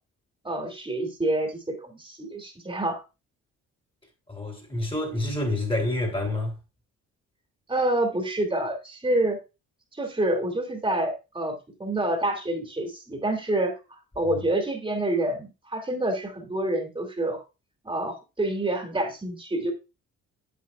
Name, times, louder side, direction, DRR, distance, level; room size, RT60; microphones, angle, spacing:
voice 1, 0.4-3.0 7.7-9.4 9.9-17.4 17.8-19.7, right 1 dB, 15° right, 2.4 m, -27 dB
voice 2, 4.3-6.5, left 1 dB, 15° left, 3.1 m, -28 dB
8.8 x 8.1 x 2.4 m
cardioid pair, 90°, 30 cm